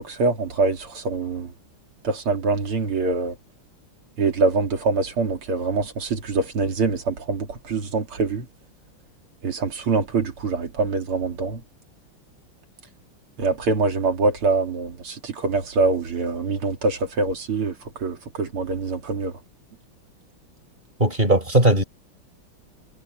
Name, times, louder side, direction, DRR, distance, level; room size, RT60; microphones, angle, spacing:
voice 1, 0.0-1.5 2.1-3.3 4.2-8.4 9.4-11.6 13.4-17.7 18.0-19.3, right 3 dB, 85° right, 3.5 m, -24 dB
voice 2, 21.0-21.8, right 1 dB, 20° right, 5.7 m, -18 dB
omnidirectional pair, 2.3 m